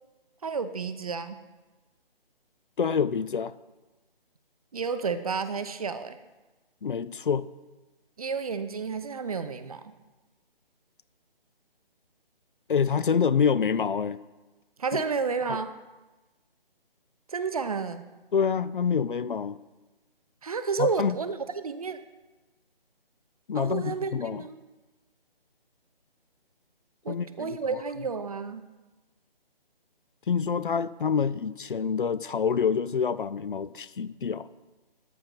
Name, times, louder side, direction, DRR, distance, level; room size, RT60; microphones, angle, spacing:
voice 1, 0.4-1.4 4.7-6.2 8.2-9.9 14.8-15.8 17.3-18.1 20.4-22.0 23.5-24.6 27.0-28.7, right 5 dB, 40° right, 11 dB, 0.6 m, -31 dB
voice 2, 2.8-3.5 6.8-7.5 12.7-14.2 14.9-15.0 15.5-15.6 18.3-19.6 20.8-21.2 23.5-24.4 27.1-27.6 30.3-34.5, left 6 dB, 60° left, 16 dB, 0.5 m, -27 dB
13.5 x 5.3 x 6.1 m, 1.1 s
figure-of-eight pair, 150°, 30 cm